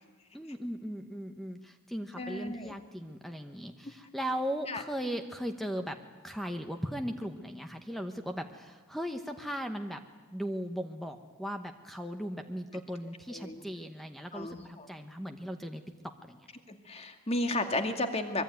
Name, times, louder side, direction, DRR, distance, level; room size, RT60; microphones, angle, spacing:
voice 1, 0.3-6.0 6.2-10.0 10.3-15.8 16.2-16.5, equal, ahead, 6 dB, 1.0 m, -37 dB
voice 2, 2.2-2.7 4.7-4.8 13.3-13.6 14.3-14.6 16.9-18.4, left 2 dB, 30° left, 6 dB, 2.2 m, -33 dB
24.5 x 22.5 x 9.4 m, 1.4 s
head